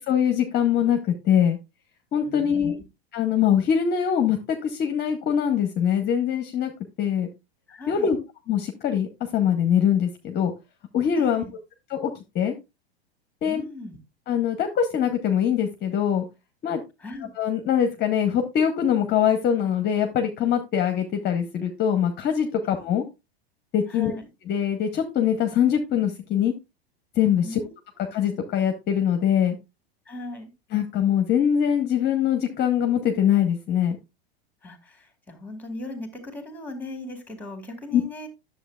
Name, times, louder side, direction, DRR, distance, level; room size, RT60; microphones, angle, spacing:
voice 1, 0.1-1.6 2.1-2.8 3.1-6.7 7.0-7.3 7.9-8.2 8.5-10.5 10.9-11.4 11.9-12.5 13.4-13.6 14.3-16.3 16.6-16.8 17.4-23.0 23.7-24.1 24.5-26.5 27.2-27.6 28.1-29.6 30.7-34.0 37.9-38.0, left 9 dB, 35° left, 6 dB, 0.9 m, -23 dB
voice 2, 2.2-2.7 7.7-8.1 11.2-11.5 13.4-14.0 17.0-17.3 22.6-22.7 23.9-24.3 27.4-27.7 30.1-30.5 34.6-38.3, left 2 dB, 5° left, 5 dB, 2.1 m, -38 dB
10.0 x 7.2 x 2.4 m, 0.23 s
hypercardioid pair, 105°, 31 cm